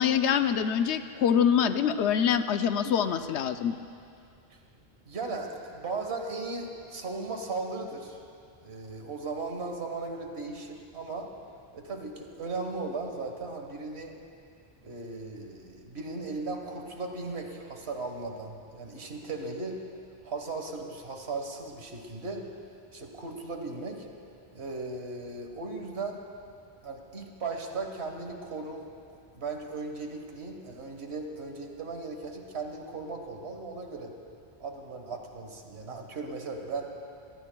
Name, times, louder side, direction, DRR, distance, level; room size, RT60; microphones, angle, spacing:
voice 1, 0.0-3.8, left 8 dB, 85° left, 9 dB, 0.9 m, -25 dB
voice 2, 5.1-8.2 8.6-11.3 11.7-14.2 14.8-19.8 20.2-22.4 22.9-24.1 24.5-26.2 26.8-34.1 34.6-36.9, right 3 dB, 70° right, 3 dB, 1.7 m, -37 dB
24.5 x 18.0 x 2.3 m, 2.4 s
omnidirectional pair, 1.1 m